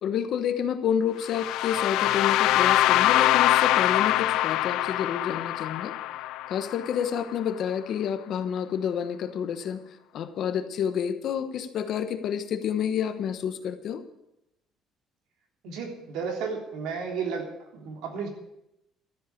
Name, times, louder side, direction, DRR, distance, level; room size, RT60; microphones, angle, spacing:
voice 1, 0.0-6.0 6.5-9.8 10.1-14.0, left 8 dB, 50° left, 9 dB, 1.1 m, -29 dB
sound 1, 1.2-7.2, left 14 dB, 80° left, 0.5 m, -24 dB
voice 2, 15.6-17.5 17.7-18.3, right 5 dB, 85° right, 1 dB, 3.4 m, -32 dB
13.0 x 8.1 x 8.5 m, 0.84 s
cardioid pair, 170°, 0 cm